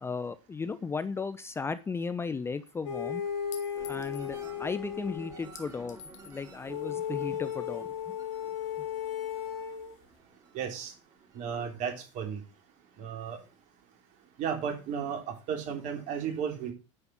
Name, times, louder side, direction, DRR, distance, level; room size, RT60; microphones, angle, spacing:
voice 1, 0.0-3.2 3.8-7.9, left 4 dB, 15° left, 14 dB, 0.6 m, -35 dB
Chink clink, 1.8-1.9 3.5-4.3 5.6-6.4, left 8 dB, 80° left, 1.8 m, -48 dB
sound 1, 2.8-5.5 6.7-9.9, left 9 dB, 60° left, 2.8 m, -35 dB
sound 2, 3.7-12.6 13.0-13.5, right 3 dB, 20° right, 3.7 m, -53 dB
voice 2, 10.5-10.9 11.3-12.4 13.0-13.4 14.4-16.7, right 7 dB, 50° right, 4 dB, 3.3 m, -34 dB
9.9 x 5.3 x 6.0 m, 0.31 s
hypercardioid pair, 100°, 16 cm